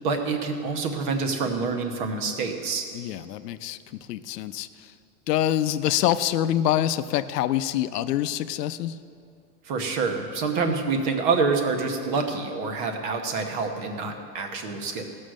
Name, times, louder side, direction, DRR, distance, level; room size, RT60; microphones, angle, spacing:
voice 1, 0.0-2.8 9.7-15.0, right 4 dB, 30° right, 5 dB, 1.0 m, -27 dB
voice 2, 2.9-4.9 5.3-9.0, left 12 dB, 75° left, 13 dB, 0.7 m, -26 dB
16.0 x 6.5 x 6.3 m, 2.5 s
supercardioid pair, 175°, 48 cm